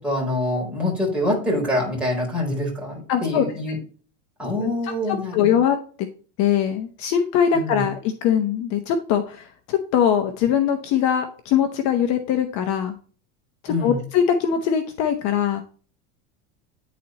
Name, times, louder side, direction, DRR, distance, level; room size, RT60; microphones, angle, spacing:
voice 1, 0.0-3.8 4.4-5.6 7.5-7.9 13.7-14.0, left 1 dB, 5° right, -2 dB, 3.6 m, -25 dB
voice 2, 3.1-3.4 4.6-4.7 5.3-5.8 6.4-12.9 13.6-15.6, left 8 dB, 50° left, 6 dB, 1.0 m, -21 dB
10.0 x 4.2 x 2.9 m, 0.41 s
supercardioid pair, 145°, 35 cm